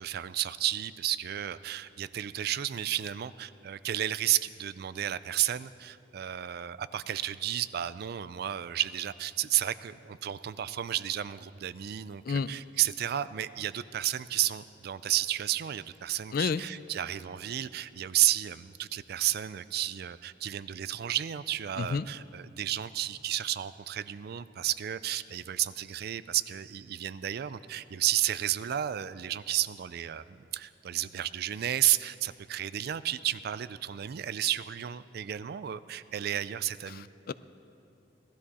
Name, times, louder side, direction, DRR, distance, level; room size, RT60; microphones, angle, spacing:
voice 1, 0.0-37.1, right 12 dB, 60° right, 16 dB, 0.4 m, -32 dB
voice 2, 16.3-16.6 21.8-22.1 36.9-37.3, left 5 dB, 55° left, 16 dB, 0.4 m, -30 dB
18.0 x 13.0 x 4.2 m, 2.6 s
head